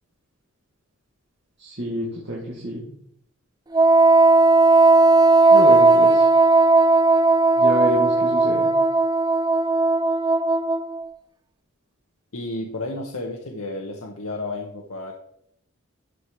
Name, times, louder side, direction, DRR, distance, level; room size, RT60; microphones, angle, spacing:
voice 1, 1.6-2.8 5.5-6.3 7.6-8.7, equal, 55° right, -4 dB, 1.8 m, -28 dB
Wind instrument woodwind instrument, 3.7-11.1, right 3 dB, 20° right, 0.3 m, -16 dB
voice 2, 12.3-15.1, left 2 dB, 80° left, 0 dB, 1.1 m, -32 dB
13.0 x 4.8 x 4.5 m, 0.72 s
head